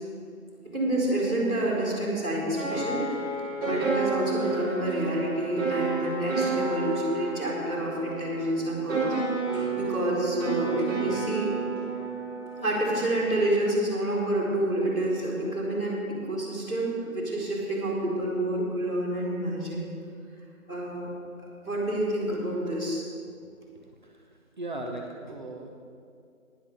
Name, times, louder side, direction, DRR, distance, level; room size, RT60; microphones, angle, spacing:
voice 1, 0.7-3.0 3.6-9.0 9.7-11.5 12.6-19.9 20.7-21.1 21.6-23.0, right 1 dB, 5° left, -15 dB, 1.2 m, -28 dB
sound 1, 2.6-13.7, right 3 dB, 15° right, 2.4 m, -31 dB
voice 2, 24.6-25.8, right 2 dB, 35° right, 0 dB, 1.0 m, -37 dB
12.5 x 10.0 x 5.5 m, 2.3 s
figure-of-eight pair, 165°, 42 cm